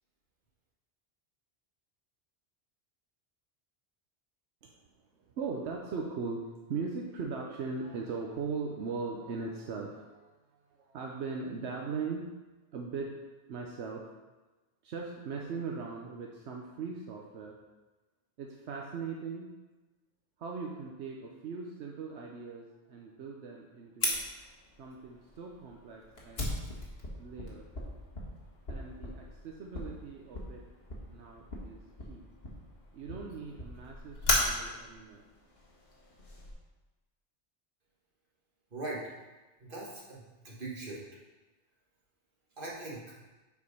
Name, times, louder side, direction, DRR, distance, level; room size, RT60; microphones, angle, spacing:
voice 1, 5.4-10.3 10.9-12.3 12.7-13.2 13.5-14.0 14.8-17.6 18.4-19.5 20.4-24.2 24.8-26.5 27.2-27.6 28.7-30.6 31.1-31.8 32.1-32.3 32.9-35.2, right 4 dB, 85° right, 0 dB, 1.1 m, -39 dB
Fire, 24.0-36.5, left 1 dB, 65° left, 1.7 m, -37 dB
voice 2, 38.7-39.1 39.6-41.0 42.6-43.1, right 2 dB, 50° right, -5 dB, 1.9 m, -40 dB
7.1 x 4.7 x 5.4 m, 1.2 s
omnidirectional pair, 1.1 m